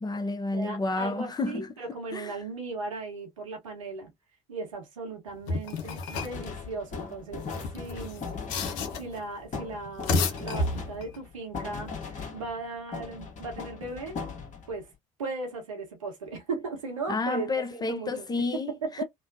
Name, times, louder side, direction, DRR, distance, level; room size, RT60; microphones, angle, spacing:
voice 1, 0.0-1.7 2.1-2.3 17.1-18.7, left 3 dB, 25° left, 0.7 m, -30 dB
voice 2, 0.5-4.1 4.5-14.2 14.7-14.9 15.2-18.3 18.8-19.0, right 3 dB, 90° right, 1.0 m, -37 dB
sound 1, 5.5-6.5 7.4-9.2 9.9-11.2, left 3 dB, 70° left, 0.7 m, -31 dB
sound 2, 6.2-12.7 12.9-14.8, left 5 dB, 50° left, 1.3 m, -39 dB
3.1 x 2.1 x 2.6 m
hypercardioid pair, 60°, 16 cm